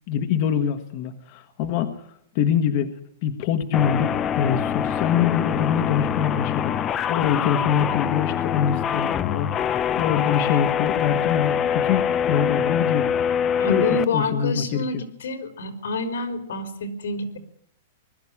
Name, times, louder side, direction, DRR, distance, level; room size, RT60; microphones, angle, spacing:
voice 1, 0.1-1.9 2.3-2.9 3.2-9.5 9.9-13.1 13.7-15.0, left 8 dB, 35° left, 7 dB, 1.4 m, -24 dB
sound 1, 3.7-14.0, left 8 dB, 15° left, 0.8 m, -24 dB
voice 2, 13.6-17.4, left 3 dB, 90° left, 9 dB, 4.2 m, -28 dB
20.5 x 13.0 x 9.9 m, 0.68 s
supercardioid pair, 170°, 0 cm